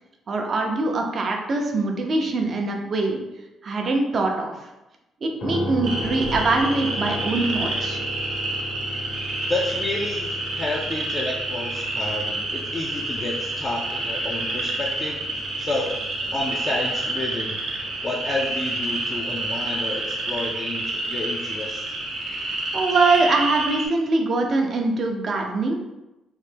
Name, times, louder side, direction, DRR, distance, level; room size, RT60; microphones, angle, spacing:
voice 1, 0.3-3.2 3.6-4.7 5.2-8.0 22.7-25.8, right 3 dB, 50° right, 2 dB, 0.5 m, -23 dB
sound 1, 5.4-19.4, left 1 dB, 55° left, 0.8 m, -36 dB
sound 2, 5.8-23.9, right 2 dB, 75° right, 0.8 m, -29 dB
voice 2, 9.5-15.2 15.6-15.9 16.3-17.6 18.0-21.8, left 2 dB, 30° left, -3 dB, 0.4 m, -30 dB
3.1 x 2.1 x 3.3 m, 0.98 s
cardioid pair, 90°, 0 cm